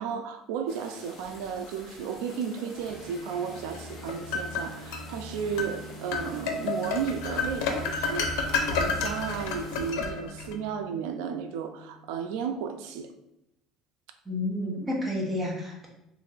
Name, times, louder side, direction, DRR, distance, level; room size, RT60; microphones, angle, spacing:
voice 1, 0.0-13.1, right 7 dB, 85° right, 7 dB, 0.3 m, -34 dB
sound 1, 0.7-9.9, left 2 dB, 30° left, 0.8 m, -49 dB
sound 2, 2.7-12.5, equal, 10° left, 1.4 m, -44 dB
sound 3, 3.7-5.1 5.6-5.7 6.1-10.5, left 4 dB, 85° left, 0.5 m, -30 dB
voice 2, 14.3-15.9, left 1 dB, 10° right, -3 dB, 0.8 m, -30 dB
3.1 x 2.5 x 3.8 m, 0.84 s
cardioid pair, 170°, 0 cm